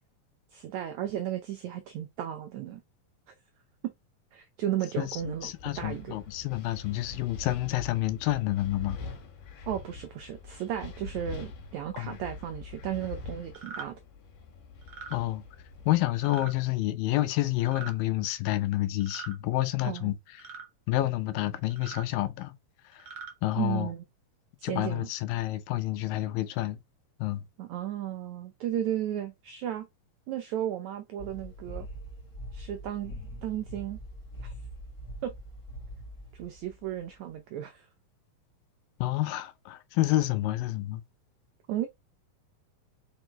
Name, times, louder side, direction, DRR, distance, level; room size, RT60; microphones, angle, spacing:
voice 1, 0.5-2.8 3.3-3.4 3.8-3.9 4.3-6.2 9.6-14.0 19.8-20.2 23.6-24.0 24.6-25.1 27.6-29.9 30.3-31.9 32.5-34.0 34.4-34.5 35.2-35.3 36.3-37.9 41.7-41.9, right 11 dB, 80° right, 1.6 m, -34 dB
voice 2, 5.0-9.0 11.9-12.2 15.1-15.4 15.9-20.1 20.9-22.5 22.9-23.1 23.4-23.9 24.6-26.8 27.2-27.4 39.0-41.0, left 16 dB, 80° left, 2.5 m, -29 dB
Wind, 5.0-16.5, left 4 dB, 65° left, 3.5 m, -44 dB
sound 1, 13.5-13.9 14.8-15.2 16.2-16.5 17.6-17.9 19.0-19.4 20.4-20.7 21.7-22.1 22.9-23.3, right 5 dB, 40° right, 2.3 m, -42 dB
sound 2, 31.2-37.3, equal, 35° left, 1.3 m, -43 dB
5.3 x 4.9 x 4.5 m
omnidirectional pair, 4.2 m